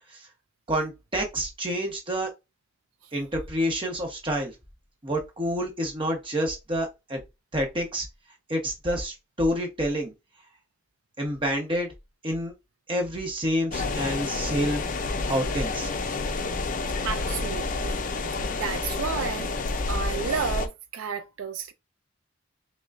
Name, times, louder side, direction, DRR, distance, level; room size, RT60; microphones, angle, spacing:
voice 1, 0.7-2.3 3.1-4.5 5.0-7.2 7.5-8.1 8.5-10.1 11.2-11.9 12.2-12.5 12.9-14.8 15.2-15.9, equal, 25° right, 1.0 m, -28 dB
sound 1, 13.7-20.7, left 3 dB, 40° left, 0.5 m, -29 dB
voice 2, 17.0-18.0 18.6-19.5 19.9-21.7, right 6 dB, 75° right, 0.4 m, -31 dB
6.0 x 2.2 x 2.5 m
head